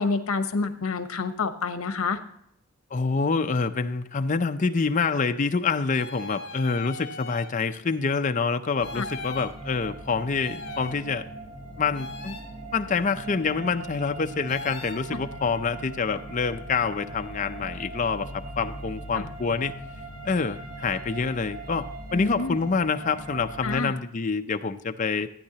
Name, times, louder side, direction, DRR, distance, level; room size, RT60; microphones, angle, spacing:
voice 1, 0.0-2.2 9.0-9.1 15.1-15.2 19.2-19.3 22.1-22.6 23.6-23.9, left 4 dB, 75° left, 9 dB, 0.9 m, -28 dB
voice 2, 2.9-11.2 11.8-12.4 12.7-18.3 18.6-19.7 20.2-25.3, left 4 dB, 35° left, 7 dB, 0.5 m, -26 dB
sound 1, 5.0-5.1 5.9-7.5 8.8-9.5 10.4-11.0 11.9-12.5 14.5-15.0, left 3 dB, 50° left, 2.1 m, -39 dB
sound 2, 8.7-23.8, right 2 dB, 70° right, 2.9 m, -40 dB
15.0 x 9.5 x 2.8 m, 0.70 s
head